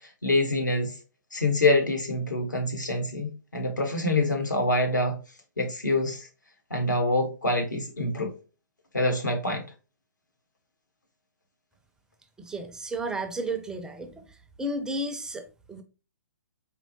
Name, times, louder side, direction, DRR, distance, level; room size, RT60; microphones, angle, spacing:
voice 1, 0.2-0.9 1.3-5.2 5.6-6.3 6.7-8.3 8.9-9.6, left 2 dB, 85° left, 1.2 m, -25 dB
voice 2, 12.4-14.2 14.6-15.8, right 1 dB, 5° right, 0.4 m, -33 dB
4.4 x 3.0 x 2.6 m
figure-of-eight pair, 125°, 10 cm